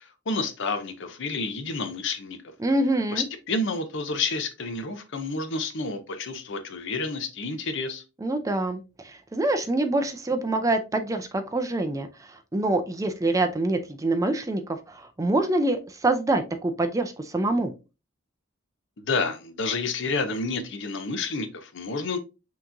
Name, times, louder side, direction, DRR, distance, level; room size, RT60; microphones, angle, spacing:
voice 1, 0.0-2.4 3.1-8.0 19.0-22.2, left 3 dB, 65° left, 0.7 m, -30 dB
voice 2, 2.6-3.3 8.2-17.7, right 2 dB, 15° right, 0.4 m, -26 dB
5.8 x 2.9 x 2.6 m
head